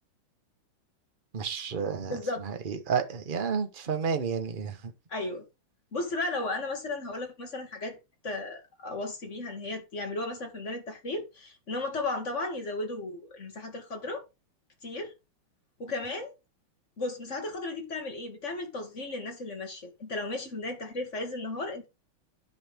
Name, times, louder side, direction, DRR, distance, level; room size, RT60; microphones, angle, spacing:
voice 1, 1.3-4.9, right 6 dB, 35° right, 0.9 m, -31 dB
voice 2, 2.1-2.4 5.1-5.4 5.9-8.0 8.2-14.2 14.8-15.1 15.8-16.4 17.0-21.9, left 2 dB, 35° left, 2.0 m, -35 dB
11.0 x 5.6 x 3.6 m
omnidirectional pair, 2.4 m